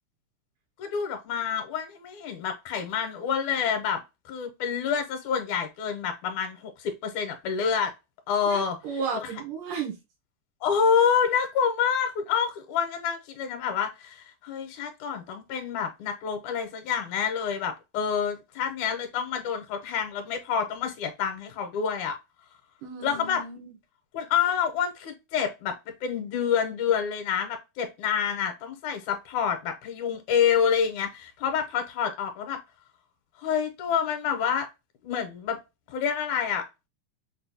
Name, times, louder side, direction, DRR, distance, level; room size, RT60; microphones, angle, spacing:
voice 1, 0.8-4.0 4.3-7.9 8.3-8.8 10.6-22.2 23.0-23.4 24.1-32.6 33.4-34.7 35.0-35.6 35.9-36.7, left 7 dB, 75° left, 2.1 m, -27 dB
voice 2, 8.5-10.0 22.8-23.7, right 5 dB, 85° right, 2.7 m, -34 dB
6.3 x 2.2 x 2.6 m
omnidirectional pair, 3.6 m